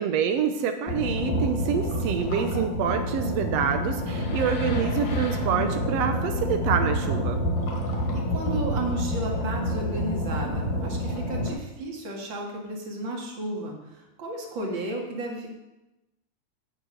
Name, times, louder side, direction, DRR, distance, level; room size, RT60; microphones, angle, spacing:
voice 1, 0.0-7.4, right 7 dB, 90° right, 6 dB, 1.4 m, -27 dB
sound 1, 0.9-11.5, equal, 65° left, 3.7 m, -28 dB
voice 2, 7.9-15.5, right 2 dB, 40° right, 0 dB, 2.5 m, -33 dB
10.5 x 6.9 x 8.0 m, 0.99 s
omnidirectional pair, 4.0 m